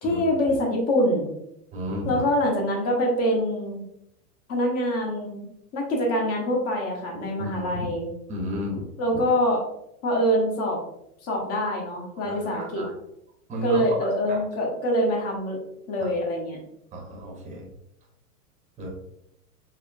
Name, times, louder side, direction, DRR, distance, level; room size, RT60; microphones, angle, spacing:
voice 1, 0.0-1.3 2.0-3.8 4.5-5.5 5.7-8.1 9.0-9.6 10.0-10.8 11.2-12.8 13.6-15.6 15.9-16.6, equal, 30° left, -1 dB, 1.3 m, -24 dB
voice 2, 1.7-2.2 7.4-7.9 8.3-8.9 9.1-9.2 12.2-12.9 13.5-13.8 14.3-14.4 16.0-16.1 16.9-17.6 18.8-18.9, equal, 15° right, -1 dB, 1.0 m, -33 dB
4.8 x 3.0 x 2.7 m, 0.78 s
hypercardioid pair, 135°, 47 cm